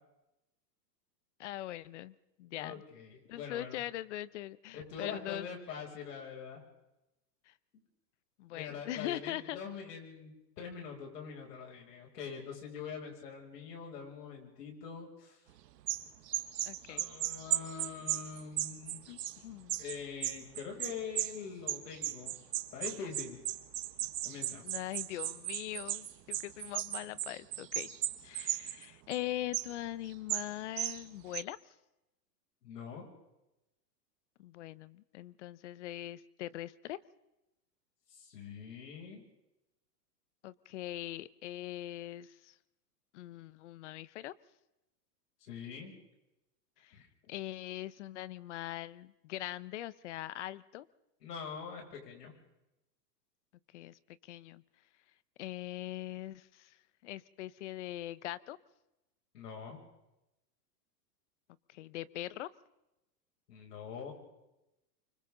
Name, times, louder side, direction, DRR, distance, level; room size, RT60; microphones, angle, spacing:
voice 1, 1.4-2.8 3.3-5.5 7.5-7.6 8.4-9.6 16.6-17.1 19.1-19.8 24.6-27.9 28.2-31.7 34.4-37.0 40.4-42.6 43.1-44.3 46.8-46.9 47.3-50.9 53.7-54.6 55.4-56.8 57.0-58.6 61.7-62.5, left 14 dB, 45° left, 18 dB, 0.8 m, -42 dB
voice 2, 2.6-3.8 4.7-6.6 8.5-15.4 16.9-19.0 19.8-22.3 22.7-23.4 24.2-24.6 32.6-33.1 38.1-39.2 45.4-45.9 46.9-47.1 51.2-52.3 59.3-59.8 63.5-64.1, left 6 dB, 75° left, 1 dB, 7.0 m, -44 dB
sound 1, 15.9-21.4 21.7-28.9 29.1-29.2 29.5-29.7 30.3-30.5 30.8-31.0 31.3-31.4, right 13 dB, 80° right, 1.6 m, -36 dB
28.5 x 25.0 x 3.9 m, 0.93 s
supercardioid pair, 170°, 49 cm